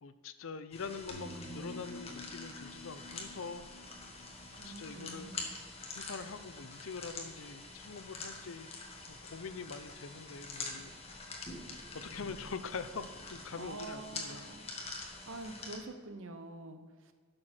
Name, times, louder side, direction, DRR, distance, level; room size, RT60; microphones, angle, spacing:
voice 1, 0.0-3.7 4.6-5.3 5.9-10.9 11.7-14.4, left 5 dB, 65° left, 12 dB, 0.6 m, -44 dB
sound 1, 0.7-15.8, left 3 dB, 30° left, 1.5 m, -46 dB
sound 2, 1.1-5.2, left 1 dB, 50° left, 2.3 m, -49 dB
voice 2, 4.5-5.5 13.5-15.0 15.3-17.1, right 2 dB, 65° right, 8 dB, 0.9 m, -47 dB
11.5 x 6.5 x 4.4 m, 1.5 s
head